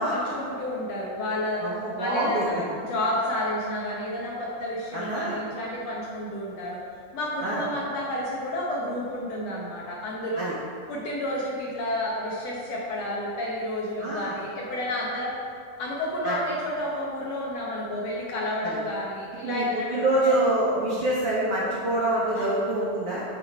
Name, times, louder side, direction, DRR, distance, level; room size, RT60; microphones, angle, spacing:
voice 1, 0.0-1.6 1.9-6.8 7.1-10.5 10.9-15.3 15.8-20.3 20.7-21.0 22.3-22.5, left 1 dB, 70° left, -4 dB, 1.7 m, -30 dB
voice 2, 1.6-2.4 4.9-5.4 7.4-7.6 10.4-10.5 14.0-14.4 16.2-16.4 18.6-18.8 19.4-19.6 19.9-23.2, right 1 dB, 65° right, -7 dB, 1.6 m, -26 dB
9.7 x 4.4 x 4.4 m, 2.3 s
omnidirectional pair, 3.8 m